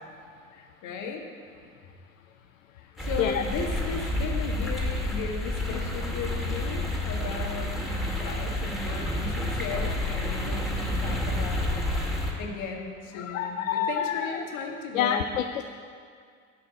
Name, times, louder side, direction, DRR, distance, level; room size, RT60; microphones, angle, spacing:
voice 1, 0.5-1.2 2.8-7.9 8.2-15.3, left 4 dB, 50° left, 2 dB, 1.8 m, -36 dB
sound 1, 3.0-12.3, left 1 dB, ahead, 2.2 m, -29 dB
voice 2, 13.2-14.3 14.9-15.6, left 9 dB, 70° left, 7 dB, 0.6 m, -27 dB
11.5 x 5.7 x 8.4 m, 2.2 s
figure-of-eight pair, 70°, 40 cm